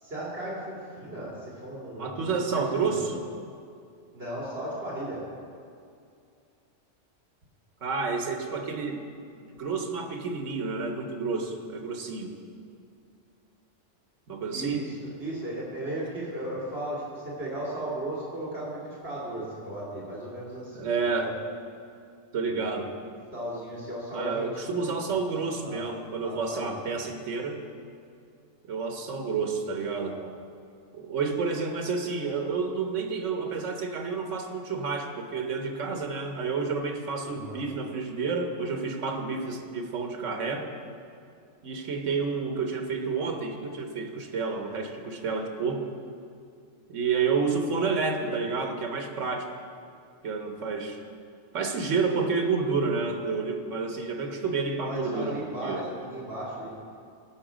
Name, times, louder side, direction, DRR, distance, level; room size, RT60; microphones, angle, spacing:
voice 1, 0.0-3.2 4.1-5.2 14.5-20.9 21.2-21.4 22.5-22.6 23.0-24.5 25.6-25.9 26.2-26.8 30.1-30.3 37.2-37.6 54.8-56.7, right 1 dB, 55° right, -6 dB, 2.7 m, -36 dB
voice 2, 2.0-3.2 7.8-9.0 9.4-12.3 14.3-14.8 20.7-21.4 22.3-22.9 24.1-27.6 28.7-30.2 30.9-40.7 41.6-45.9 46.9-49.5 50.2-51.0 51.5-55.8, right 4 dB, 75° right, 4 dB, 1.4 m, -30 dB
16.0 x 6.2 x 5.0 m, 2.4 s
omnidirectional pair, 1.3 m